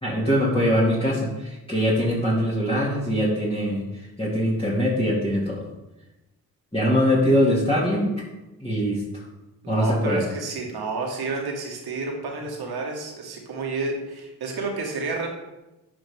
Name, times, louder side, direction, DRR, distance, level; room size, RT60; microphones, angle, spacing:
voice 1, 0.0-3.8 4.2-5.6 6.7-8.2 8.6-9.2 9.7-10.3, equal, 15° left, -7 dB, 2.5 m, -22 dB
voice 2, 9.6-15.3, right 3 dB, 70° right, 0 dB, 2.1 m, -30 dB
12.0 x 4.8 x 3.7 m, 1.0 s
cardioid pair, 60°, 39 cm